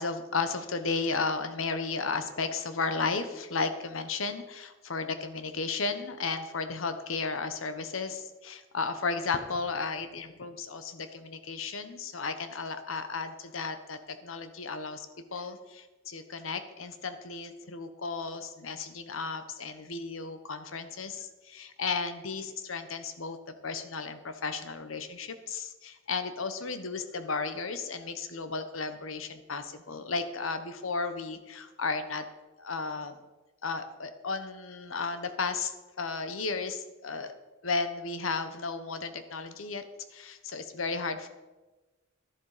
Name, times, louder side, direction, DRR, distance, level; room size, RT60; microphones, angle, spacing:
voice 1, 0.0-23.4 23.6-32.2 32.6-33.1 33.6-37.3 37.6-39.8 40.1-41.3, left 4 dB, 85° left, 9 dB, 1.1 m, -34 dB
12.0 x 11.0 x 5.0 m, 1.2 s
head